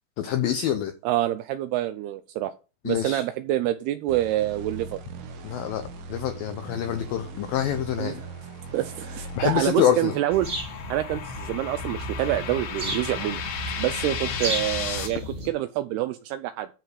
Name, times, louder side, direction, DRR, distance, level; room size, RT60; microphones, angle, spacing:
voice 1, 0.2-0.9 2.9-3.2 5.4-5.8 6.1-8.2 9.4-10.1, left 10 dB, 85° left, 2.0 m, -26 dB
voice 2, 1.0-2.5 2.9-5.0 8.0-8.3 8.7-10.5 10.9-13.4 13.8-16.7, right 14 dB, 85° right, 2.3 m, -27 dB
sound 1, 4.1-10.5, right 4 dB, 65° right, 2.5 m, -40 dB
sound 2, 8.3-15.1, left 7 dB, 65° left, 2.2 m, -35 dB
sound 3, 10.3-15.5, equal, 25° right, 3.0 m, -34 dB
12.5 x 4.9 x 4.8 m
omnidirectional pair, 5.1 m